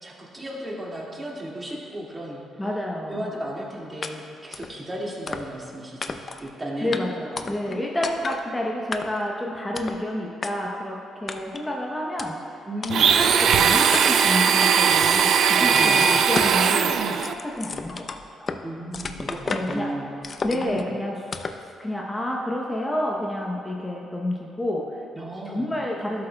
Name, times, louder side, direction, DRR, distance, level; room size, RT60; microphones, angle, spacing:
voice 1, 0.0-2.4 3.1-7.0 7.4-7.5 12.7-13.1 15.6-16.1 18.6-20.1 20.5-20.8 25.1-25.7, equal, 20° right, -4 dB, 2.0 m, -34 dB
voice 2, 2.6-3.3 6.8-12.5 13.1-18.1 18.3-18.5 19.5-19.9 20.4-21.2 21.8-25.1 25.4-26.3, left 1 dB, 15° left, -2 dB, 0.8 m, -29 dB
sound 1, 4.0-4.1 4.5-4.7 5.3-5.7 6.0-6.5 6.9-7.0 7.4-7.8 8.0-8.4 8.9-9.3 9.7-10.0 10.4-10.5 11.3-11.6 12.2-12.3 12.8-12.9 13.4-13.5 13.9-14.3 15.0-15.4 15.7-15.9 16.3-16.6 16.9-18.6 18.9-19.8 20.2-20.8 21.3-21.6, left 4 dB, 40° left, 0.4 m, -32 dB
Domestic sounds home sounds, 12.9-17.3, right 7 dB, 65° right, 0.4 m, -19 dB
12.5 x 7.7 x 2.2 m, 2.6 s
cardioid pair, 90°, 0 cm